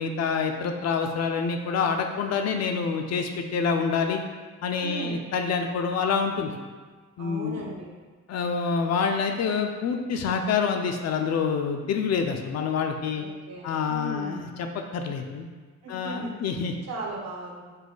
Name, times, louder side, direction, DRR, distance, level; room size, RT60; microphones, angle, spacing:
voice 1, 0.0-4.2 4.6-6.5 7.2-7.6 8.3-13.2 13.6-15.5 15.9-16.8, left 5 dB, 60° left, 5 dB, 0.5 m, -27 dB
voice 2, 4.8-5.2 7.2-7.9 13.0-14.5 15.8-16.3 16.9-17.6, right 2 dB, 60° right, -1 dB, 0.9 m, -37 dB
4.1 x 2.7 x 3.8 m, 1.4 s
cardioid pair, 90°, 30 cm